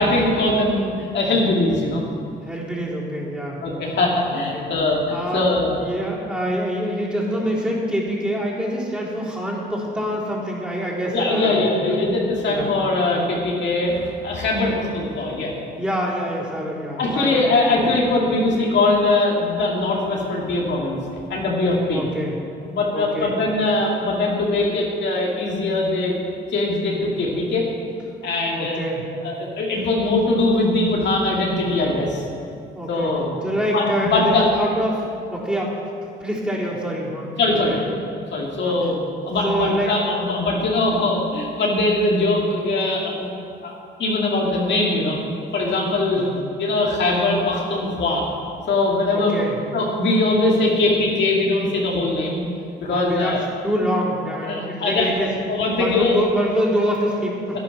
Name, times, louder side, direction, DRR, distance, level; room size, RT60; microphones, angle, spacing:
voice 1, 0.0-2.0 3.6-5.8 11.1-15.5 16.9-21.0 21.3-22.0 22.7-26.1 26.5-27.6 28.2-28.8 29.2-32.2 32.9-33.3 33.7-34.5 37.4-37.7 38.3-43.3 43.6-43.7 44.0-45.2 45.5-46.3 46.6-48.3 48.7-49.4 49.7-52.4 52.8-53.4 54.4-56.2, left 2 dB, 65° left, -3 dB, 2.3 m, -21 dB
voice 2, 2.4-3.8 4.3-4.7 5.1-5.4 5.8-12.0 12.5-12.7 15.8-17.5 21.9-22.4 22.9-23.3 28.5-29.0 29.7-29.8 32.7-33.1 33.4-35.0 35.3-35.7 36.2-38.0 38.6-38.7 39.4-39.9 46.1-46.3 49.1-49.6 52.9-53.4 53.6-55.3 55.7-57.6, equal, 5° right, -6 dB, 3.8 m, -26 dB
11.5 x 10.5 x 6.1 m, 2.4 s
cardioid pair, 90°, 20 cm